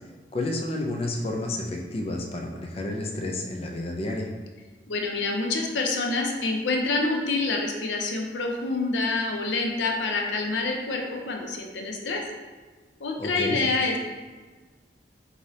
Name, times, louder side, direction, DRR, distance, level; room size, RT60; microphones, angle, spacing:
voice 1, 0.3-4.3 13.2-13.6, left 2 dB, 35° left, 2 dB, 0.4 m, -30 dB
voice 2, 4.9-12.2 13.0-14.0, left 3 dB, 80° left, 2 dB, 0.6 m, -27 dB
4.8 x 2.7 x 2.7 m, 1.4 s
head